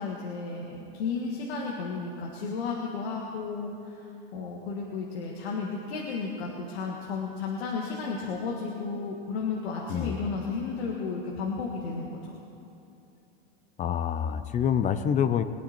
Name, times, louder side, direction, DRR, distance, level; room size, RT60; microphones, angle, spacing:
voice 1, 0.0-12.4, left 4 dB, 80° left, -2 dB, 1.9 m, -33 dB
voice 2, 9.9-10.2 13.8-15.4, left 8 dB, 25° left, 11 dB, 0.6 m, -26 dB
22.0 x 9.6 x 4.4 m, 2.7 s
supercardioid pair, 130°, 31 cm